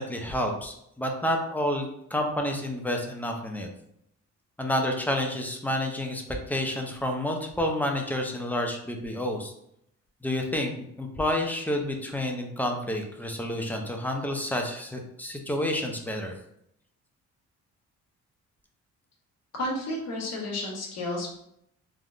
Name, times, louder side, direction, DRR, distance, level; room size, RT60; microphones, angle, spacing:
voice 1, 0.0-3.7 4.6-6.2 6.5-9.5 10.2-16.3, left 1 dB, 5° left, 3 dB, 0.4 m, -29 dB
voice 2, 19.5-21.3, left 1 dB, 55° left, -1 dB, 1.0 m, -31 dB
3.4 x 2.0 x 2.4 m, 0.75 s
cardioid pair, 90°, 30 cm